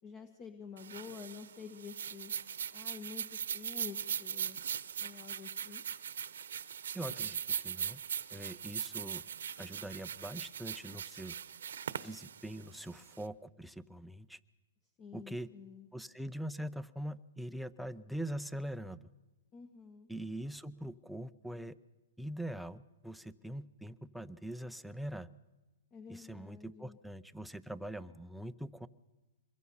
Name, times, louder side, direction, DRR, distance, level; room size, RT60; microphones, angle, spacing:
voice 1, 0.0-2.3 2.7-3.2 3.5-4.6 5.0-5.8 15.0-15.9 19.5-20.1 25.9-27.0, left 6 dB, 30° left, 7 dB, 1.6 m, -49 dB
sound 1, 0.8-13.2, right 8 dB, 80° right, 1.0 m, -40 dB
voice 2, 6.9-8.0 8.3-9.2 9.6-11.4 12.0-14.4 15.1-15.5 15.9-19.0 20.1-21.8 22.2-25.3 26.1-28.9, right 1 dB, ahead, 11 dB, 0.7 m, -43 dB
25.0 x 22.0 x 5.6 m, 1.2 s
hypercardioid pair, 140°, 0 cm